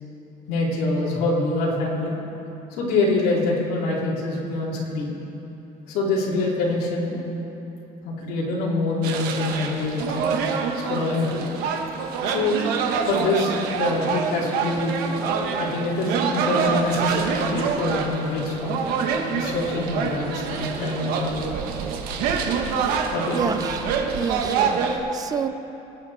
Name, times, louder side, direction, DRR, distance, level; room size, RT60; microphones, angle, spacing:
voice 1, 0.5-2.1 2.7-5.1 5.9-7.1 8.0-10.3 10.9-11.5 12.2-12.6 13.1-15.2 15.6-18.8 19.3-21.4 23.1-23.6, left 2 dB, 70° left, -5 dB, 3.1 m, -25 dB
sound 1, 9.0-25.0, right 6 dB, 70° right, 1.4 m, -26 dB
voice 2, 23.3-25.5, right 7 dB, 25° right, 11 dB, 0.4 m, -29 dB
25.0 x 9.2 x 4.2 m, 3.0 s
cardioid pair, 160°, 16 cm